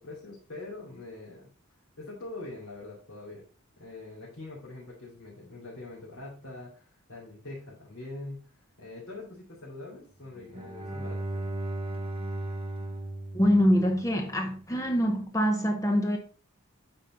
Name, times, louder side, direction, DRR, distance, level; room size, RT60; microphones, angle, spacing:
voice 1, 0.0-1.5 2.0-3.4 3.8-8.5 8.8-11.5, left 2 dB, 65° left, 2.7 m, -43 dB
Bowed string instrument, 10.3-14.4, right 1 dB, 25° right, 0.8 m, -36 dB
voice 2, 13.3-16.2, equal, 15° left, 0.7 m, -24 dB
8.7 x 4.3 x 3.8 m
head